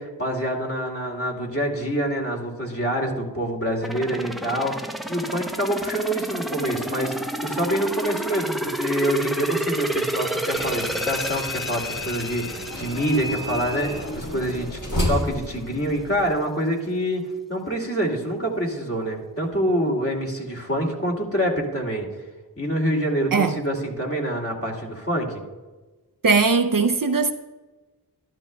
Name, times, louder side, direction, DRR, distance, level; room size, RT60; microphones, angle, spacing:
voice 1, 0.0-4.7 5.1-7.1 7.4-22.1 22.6-25.4, equal, 35° left, 2.5 m, -26 dB
sound 1, 3.8-14.6 15.0-15.1, right 1 dB, ahead, 0.7 m, -30 dB
sound 2, 10.5-16.4, left 1 dB, 50° left, 2.9 m, -31 dB
voice 2, 26.2-27.3, right 4 dB, 55° right, 0.6 m, -19 dB
13.0 x 12.0 x 2.2 m
wide cardioid pair, 45°, 41 cm